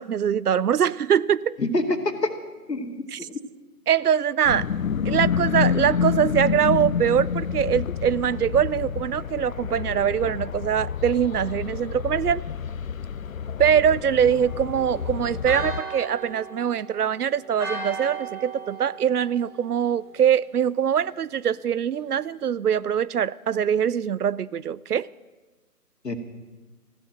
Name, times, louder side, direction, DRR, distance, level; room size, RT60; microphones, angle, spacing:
voice 1, 0.0-1.6 3.1-3.3 3.9-4.7 5.0-12.4 13.6-25.1, right 8 dB, 70° right, 0.6 m, -23 dB
voice 2, 1.6-2.3 2.7-3.4 26.0-26.1, left 2 dB, 90° left, 2.3 m, -26 dB
sound 1, 4.4-15.8, left 7 dB, 60° left, 0.6 m, -28 dB
Church bell, 14.5-20.2, right 3 dB, 5° right, 1.0 m, -37 dB
15.0 x 12.0 x 7.7 m
figure-of-eight pair, 150°, 47 cm